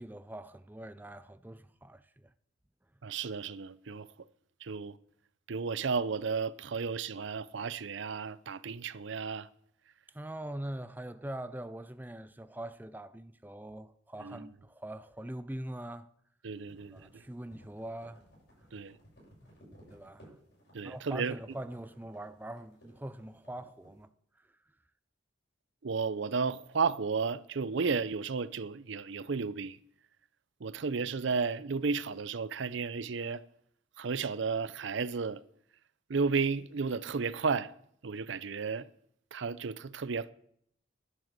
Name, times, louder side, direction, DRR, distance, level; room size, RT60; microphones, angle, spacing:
voice 1, 0.0-2.3 10.1-16.1 16.9-18.2 19.9-20.4 20.8-24.1 24.3-24.6, right 1 dB, 10° right, 0.4 m, -43 dB
voice 2, 3.0-4.3 4.6-5.0 5.5-9.5 14.2-14.5 16.4-17.2 18.7-19.0 20.7-21.4 25.8-29.8 30.6-33.4 34.0-35.4 36.1-37.7 38.0-38.9 39.3-40.3, right 5 dB, 70° right, 0.5 m, -33 dB
sound 1, 16.5-24.0, equal, 60° left, 6.9 m, -59 dB
11.0 x 7.9 x 8.1 m
head